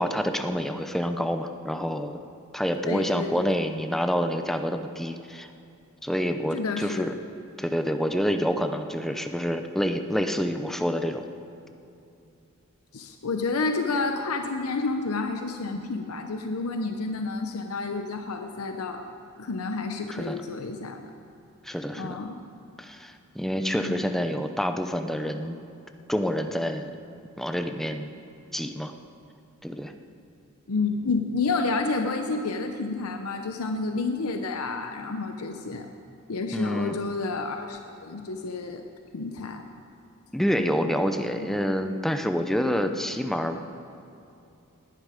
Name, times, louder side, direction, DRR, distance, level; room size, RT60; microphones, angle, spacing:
voice 1, 0.0-2.2 2.5-5.5 6.0-7.2 7.6-11.2 20.1-20.4 21.6-22.2 22.8-25.6 26.1-26.9 27.4-28.1 28.5-28.9 29.6-29.9 36.5-37.0 40.3-43.6, equal, ahead, 7 dB, 0.6 m, -27 dB
voice 2, 2.8-3.6 6.5-7.1 12.9-19.0 19.4-21.1 22.0-22.4 23.8-24.0 30.7-35.9 36.3-38.8 39.1-39.6 41.4-41.6, left 3 dB, 75° left, 5 dB, 0.8 m, -30 dB
19.0 x 10.0 x 5.0 m, 2.7 s
head